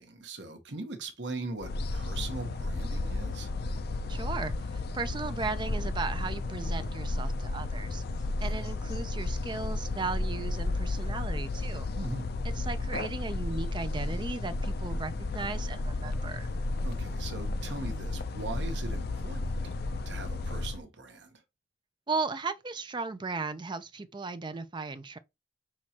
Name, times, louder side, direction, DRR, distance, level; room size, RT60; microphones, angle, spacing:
voice 1, 0.0-3.5 8.4-8.6 11.9-12.3 16.8-19.6 20.0-21.4, right 3 dB, 65° right, 1.1 m, -40 dB
sound 1, 1.6-20.8, left 2 dB, 55° left, 0.5 m, -33 dB
voice 2, 4.1-8.0 8.4-11.9 12.5-16.5 22.1-25.2, right 4 dB, 25° right, 0.5 m, -36 dB
5.9 x 3.1 x 2.9 m
head